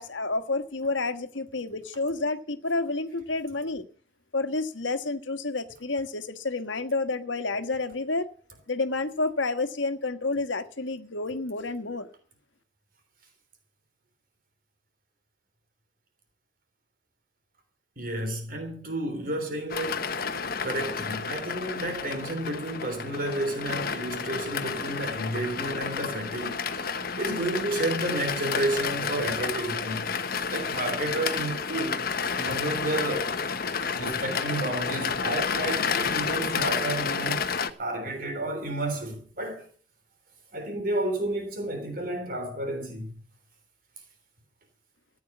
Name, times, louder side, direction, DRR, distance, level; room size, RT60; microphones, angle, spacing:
voice 1, 0.0-3.9 4.3-8.3 8.7-12.1, left 3 dB, 75° left, 1.5 m, -29 dB
voice 2, 18.0-20.1 20.6-26.9 27.2-32.0 32.4-33.3 33.9-39.7 40.5-43.1, right 1 dB, 45° right, 3.4 m, -31 dB
sound 1, 19.7-37.7, left 5 dB, 50° left, 1.1 m, -30 dB
15.5 x 9.5 x 7.3 m
head